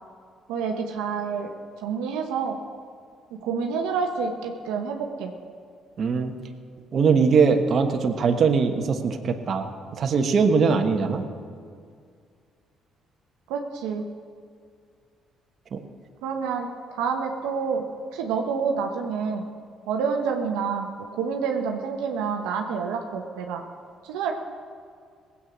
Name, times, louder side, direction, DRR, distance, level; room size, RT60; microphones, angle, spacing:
voice 1, 0.5-1.5 1.8-2.6 3.3-5.3 13.5-14.0 16.2-17.8 18.1-19.5 19.9-23.6 24.0-24.3, right 6 dB, 85° right, 2 dB, 1.0 m, -28 dB
voice 2, 6.0-6.3 6.9-9.7 10.0-11.2 15.7-15.8, right 5 dB, 55° right, 5 dB, 1.3 m, -21 dB
18.5 x 8.5 x 6.2 m, 2.2 s
supercardioid pair, 65°, 0 cm